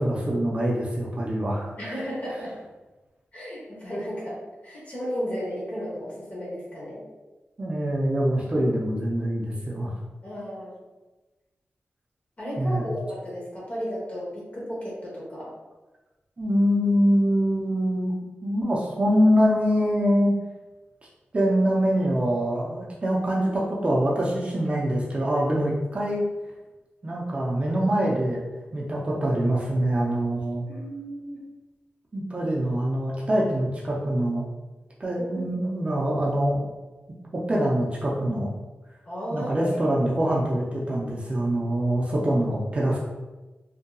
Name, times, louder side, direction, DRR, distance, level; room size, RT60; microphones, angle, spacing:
voice 1, 0.0-1.7 7.6-9.9 12.6-12.8 16.4-18.1 18.4-20.4 21.3-26.2 27.0-28.4 28.7-30.6 32.1-34.5 35.0-36.7 37.3-38.6 39.3-43.0, equal, 30° right, -4 dB, 0.5 m, -24 dB
voice 2, 1.8-2.5 3.3-4.4 4.6-7.0 10.2-10.7 12.4-15.5 30.7-31.4 35.2-35.5 39.0-39.8, equal, 35° left, -6 dB, 0.9 m, -34 dB
2.7 x 2.6 x 2.2 m, 1.2 s
wide cardioid pair, 130°, 4 cm